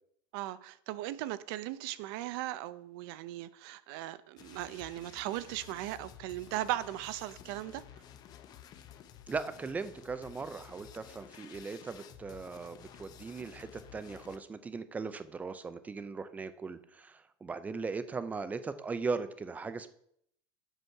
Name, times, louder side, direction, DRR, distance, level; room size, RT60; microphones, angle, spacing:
voice 1, 0.3-7.8, right 14 dB, 55° right, 0.5 m, -38 dB
sound 1, 4.4-14.4, left 9 dB, 30° left, 0.6 m, -53 dB
voice 2, 9.3-19.9, right 4 dB, 10° right, 0.4 m, -38 dB
8.0 x 6.2 x 5.6 m
supercardioid pair, 160°, 14 cm